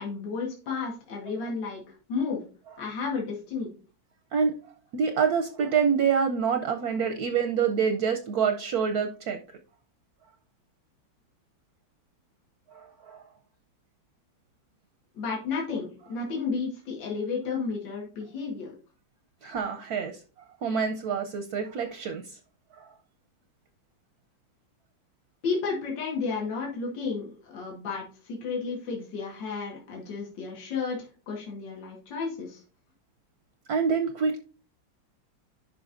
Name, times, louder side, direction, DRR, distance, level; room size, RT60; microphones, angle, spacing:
voice 1, 0.0-1.8 2.1-2.4 2.8-3.7 15.1-18.7 25.4-32.6, left 4 dB, 65° left, -2 dB, 2.3 m, -32 dB
voice 2, 4.9-9.4 12.7-13.2 19.4-20.2 20.6-22.2 22.8-22.9 33.7-34.4, right 6 dB, 65° right, 6 dB, 1.0 m, -26 dB
11.0 x 5.3 x 2.6 m, 0.38 s
omnidirectional pair, 2.1 m